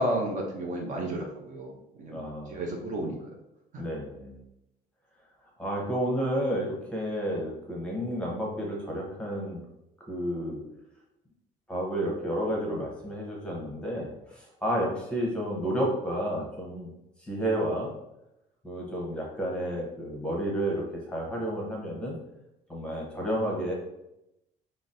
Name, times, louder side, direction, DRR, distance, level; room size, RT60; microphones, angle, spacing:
voice 1, 0.0-1.7 2.0-2.2 2.5-3.1 3.7-3.8, right 1 dB, 50° right, 0 dB, 0.6 m, -31 dB
voice 2, 2.1-2.6 3.8-4.4 5.6-9.6 10.1-10.6 11.7-16.9 17.2-17.9 18.6-22.2 22.7-23.7, equal, 5° left, -3 dB, 0.9 m, -31 dB
3.9 x 2.0 x 2.6 m, 0.88 s
cardioid pair, 110°, 17 cm